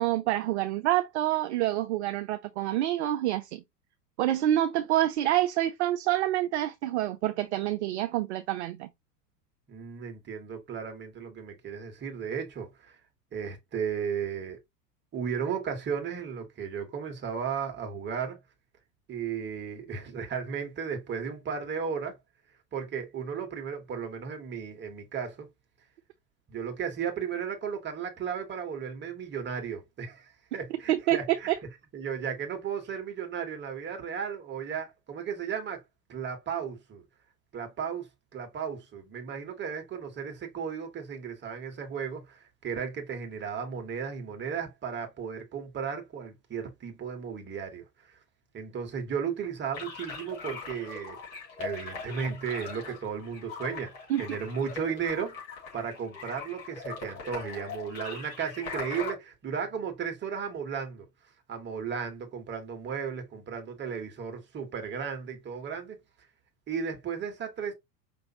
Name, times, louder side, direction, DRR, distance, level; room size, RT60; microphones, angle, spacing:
voice 1, 0.0-3.6 4.2-8.9 30.9-31.6 54.1-54.2, right 13 dB, 45° right, 0.4 m, -27 dB
voice 2, 9.7-13.0 13.3-14.6 15.1-18.4 19.1-22.2 22.7-25.5 26.5-31.5 31.9-35.8 36.1-37.0 37.5-38.1 38.3-48.2 48.5-51.2 51.6-55.4 55.7-61.1 61.5-66.0 66.7-67.7, right 7 dB, 20° right, 1.4 m, -35 dB
sound 1, 49.7-59.1, left 4 dB, 55° left, 3.2 m, -41 dB
5.1 x 3.0 x 2.8 m
figure-of-eight pair, 85°, 49 cm